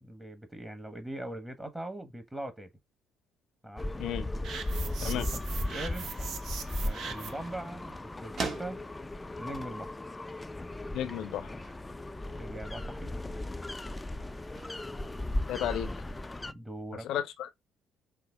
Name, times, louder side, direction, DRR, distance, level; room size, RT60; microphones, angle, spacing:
voice 1, 0.0-2.7 3.6-3.9 5.0-5.2 5.6-6.3 6.8-8.8 9.4-10.0 12.4-13.2 16.5-17.1, right 1 dB, 10° right, 1.2 m, -41 dB
sound 1, 3.8-16.5, left 1 dB, 20° left, 0.5 m, -37 dB
voice 2, 4.0-4.3 5.0-5.3 10.9-11.5 15.5-15.9 16.9-17.6, left 11 dB, 70° left, 0.7 m, -33 dB
sound 2, 4.4-7.5, right 6 dB, 60° right, 0.8 m, -41 dB
sound 3, 10.5-16.1, right 4 dB, 45° right, 1.5 m, -46 dB
5.6 x 2.0 x 3.4 m
hypercardioid pair, 55°, 0 cm